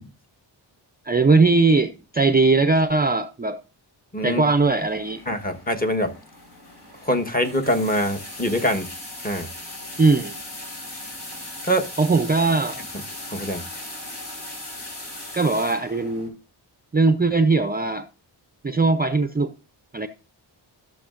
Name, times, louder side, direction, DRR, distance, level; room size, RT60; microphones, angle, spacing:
voice 1, 1.1-3.6 4.2-5.2 10.0-10.4 12.0-12.8 15.3-16.3 16.9-18.1 18.6-19.5 19.9-20.1, right 3 dB, 20° right, 0.5 m, -19 dB
voice 2, 4.1-4.4 5.3-6.2 7.0-8.9 9.2-9.5 11.6-11.9 13.3-13.6, equal, 20° left, 1.2 m, -24 dB
sound 1, 4.5-16.3, left 1 dB, 55° left, 4.5 m, -38 dB
14.0 x 6.5 x 2.5 m
wide cardioid pair, 85°, 45 cm